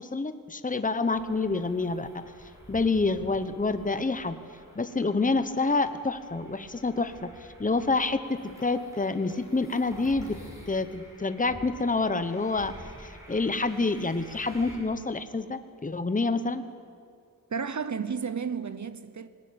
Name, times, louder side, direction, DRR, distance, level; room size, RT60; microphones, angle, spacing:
voice 1, 0.0-2.2 2.7-4.4 4.8-7.3 7.6-10.4 10.7-12.7 13.0-16.6, left 3 dB, 25° left, 1.0 m, -27 dB
sound 1, 1.1-14.8, equal, 10° right, 6.8 m, -49 dB
voice 2, 17.5-19.3, right 6 dB, 55° right, 0.9 m, -32 dB
20.5 x 19.0 x 8.8 m
wide cardioid pair, 95°, 34 cm